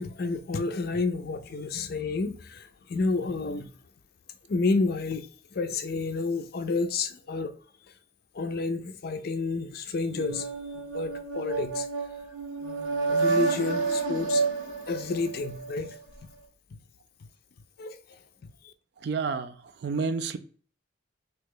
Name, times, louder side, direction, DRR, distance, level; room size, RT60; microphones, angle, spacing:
voice 1, 0.0-3.7 4.5-7.5 8.3-10.5 10.7-11.9 13.1-14.4 14.9-16.0 17.8-18.7, left 3 dB, 50° left, 0.4 m, -30 dB
sound 1, 10.1-15.9, right 4 dB, 85° right, 0.9 m, -30 dB
voice 2, 19.0-20.4, right 4 dB, 55° right, 0.4 m, -30 dB
3.2 x 2.8 x 3.7 m
head